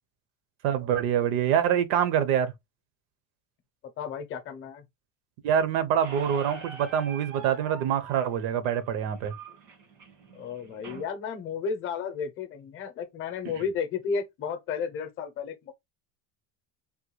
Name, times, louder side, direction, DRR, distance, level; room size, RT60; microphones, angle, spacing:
voice 1, 0.6-2.5 5.4-9.3, right 9 dB, 70° right, 0.7 m, -25 dB
voice 2, 4.0-4.8 10.3-15.7, left 6 dB, 35° left, 0.6 m, -33 dB
Squeak, 6.0-11.0, right 4 dB, 85° right, 1.6 m, -44 dB
3.6 x 2.2 x 3.0 m
cardioid pair, 175°, 34 cm